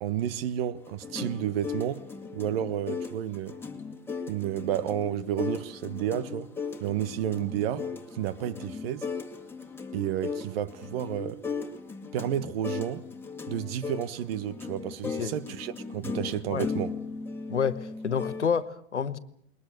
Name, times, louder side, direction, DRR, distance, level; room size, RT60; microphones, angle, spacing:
voice 1, 0.0-2.0 2.3-3.6 4.3-6.5 6.8-7.9 8.1-9.1 9.9-11.4 12.1-13.0 13.5-16.9, right 10 dB, 55° right, 1.4 m, -31 dB
sound 1, 0.8-18.5, left 5 dB, 5° left, 2.3 m, -37 dB
voice 2, 15.0-15.3 16.5-16.7 17.5-19.2, left 6 dB, 90° left, 1.3 m, -29 dB
21.0 x 20.5 x 8.1 m
hypercardioid pair, 105°, 34 cm